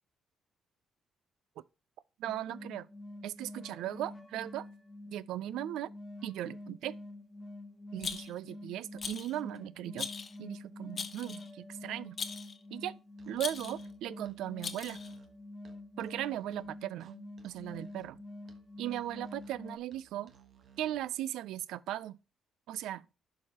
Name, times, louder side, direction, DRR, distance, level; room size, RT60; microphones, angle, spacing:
voice 1, 2.2-2.9 3.2-4.7 5.1-5.9 6.2-7.0 7.9-10.1 10.4-12.2 12.7-12.9 13.3-15.0 16.0-17.1 17.4-18.2 18.8-20.3 20.8-22.2 22.7-23.1, right 13 dB, 85° right, 0.3 m, -38 dB
sound 1, 2.3-19.8, left 1 dB, 15° left, 1.1 m, -47 dB
Rattle, 8.0-8.5 9.0-9.4 10.0-10.4 11.0-11.5 12.2-12.6 13.4-13.9 14.6-15.1, left 6 dB, 45° left, 0.8 m, -39 dB
Musical instrument, 13.1-21.1, right 8 dB, 55° right, 1.1 m, -60 dB
11.0 x 4.7 x 2.9 m
cardioid pair, 90°, 0 cm